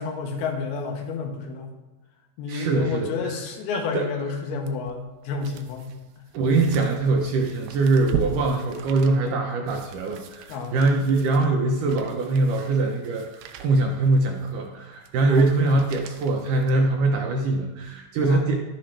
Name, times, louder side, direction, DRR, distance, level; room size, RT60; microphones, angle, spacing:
voice 1, 0.0-1.7 2.4-6.0 10.5-10.8 15.3-15.5 18.2-18.5, left 4 dB, 80° left, 3 dB, 3.2 m, -30 dB
voice 2, 2.5-3.4 3.9-4.2 6.3-18.6, right 2 dB, 70° right, 1 dB, 2.0 m, -23 dB
sound 1, 4.7-17.3 17.8-17.9, right 9 dB, 90° right, 2.6 m, -39 dB
11.5 x 10.0 x 3.3 m, 1.1 s
omnidirectional pair, 4.5 m